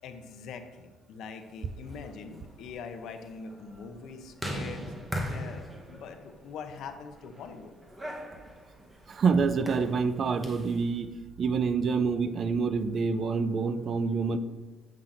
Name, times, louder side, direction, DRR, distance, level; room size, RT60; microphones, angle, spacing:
voice 1, 0.0-4.8 5.3-7.7, left 5 dB, 70° left, 7 dB, 0.6 m, -43 dB
sound 1, 1.7-10.8, equal, 15° right, 0.9 m, -40 dB
voice 2, 9.1-11.1 11.4-14.4, right 5 dB, 40° right, 12 dB, 0.3 m, -27 dB
7.3 x 5.5 x 2.5 m, 1.2 s
cardioid pair, 130°, 0 cm